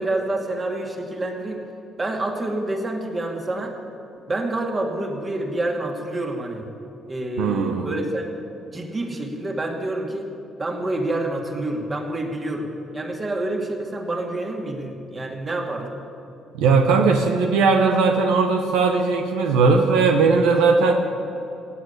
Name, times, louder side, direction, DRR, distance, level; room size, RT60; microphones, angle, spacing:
voice 1, 0.0-1.6 2.0-3.8 4.3-6.7 7.1-8.3 8.7-10.3 10.6-12.7 12.9-15.9, right 2 dB, 30° right, 2 dB, 2.5 m, -27 dB
voice 2, 7.4-7.9 16.6-20.9, right 4 dB, 85° right, 4 dB, 1.1 m, -18 dB
17.0 x 8.6 x 8.3 m, 2.8 s
supercardioid pair, 75°, 0 cm